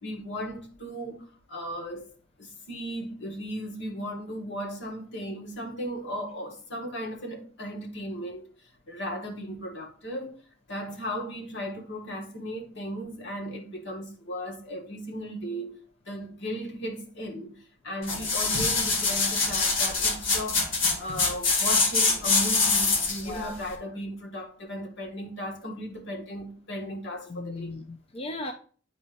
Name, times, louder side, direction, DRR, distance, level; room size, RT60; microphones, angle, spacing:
voice 1, 0.0-2.1 2.4-8.4 8.9-10.4 10.7-15.8 16.1-17.5 17.8-20.6 21.0-27.7, equal, 65° left, 1.5 m, -36 dB
sound 1, 18.0-23.3 23.7-23.8, left 4 dB, 85° left, 1.9 m, -24 dB
voice 2, 23.2-23.6 27.3-28.5, left 2 dB, 30° left, 0.5 m, -36 dB
10.0 x 4.2 x 2.6 m
head